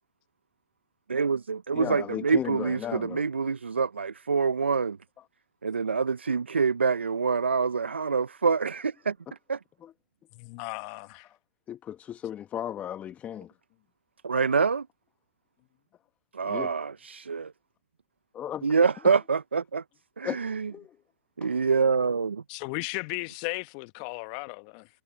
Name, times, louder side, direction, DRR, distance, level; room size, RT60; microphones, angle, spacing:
voice 1, 1.1-5.0 5.6-9.2 9.5-9.6 14.2-14.9 16.3-17.5 18.6-19.8 20.2-20.7 21.4-22.4, right 5 dB, 85° right, 0.8 m, -26 dB
voice 2, 1.7-3.2 9.8-9.9 11.7-13.5 16.4-16.7 18.3-18.6 20.2-20.4 20.7-20.9, left 10 dB, 25° left, 1.4 m, -35 dB
voice 3, 10.3-11.3 22.5-24.9, left 31 dB, 45° left, 1.0 m, -35 dB
hypercardioid pair, 110°, 6 cm